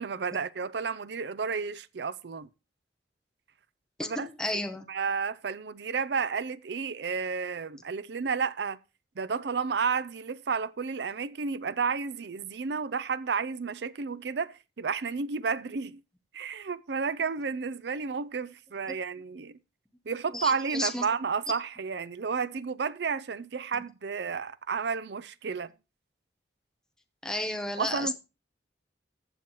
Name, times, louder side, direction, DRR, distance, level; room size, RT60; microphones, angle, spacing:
voice 1, 0.0-2.5 4.0-4.3 4.9-8.8 9.2-16.0 16.3-19.6 20.1-25.7 27.8-28.1, right 5 dB, 65° right, 0.5 m, -31 dB
voice 2, 4.0-4.9 20.3-21.1 23.7-23.8 27.2-28.1, left 1 dB, 5° left, 0.9 m, -33 dB
15.0 x 7.1 x 3.1 m
head